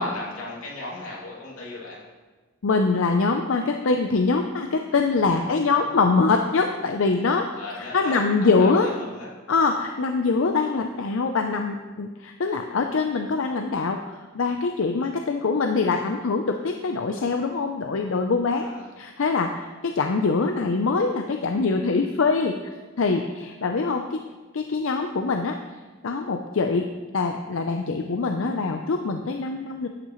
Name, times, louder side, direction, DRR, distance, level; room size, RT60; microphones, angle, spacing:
voice 1, 0.0-2.0 5.2-5.8 7.5-9.3 15.0-15.1 18.6-18.8, left 2 dB, 90° left, -4 dB, 2.6 m, -37 dB
voice 2, 2.6-7.5 7.9-8.9 9.5-14.0 14.3-18.7 19.0-22.6 23.0-24.2 24.5-25.6 26.0-29.9, left 4 dB, 65° left, 4 dB, 0.5 m, -23 dB
12.0 x 8.4 x 3.1 m, 1.3 s
head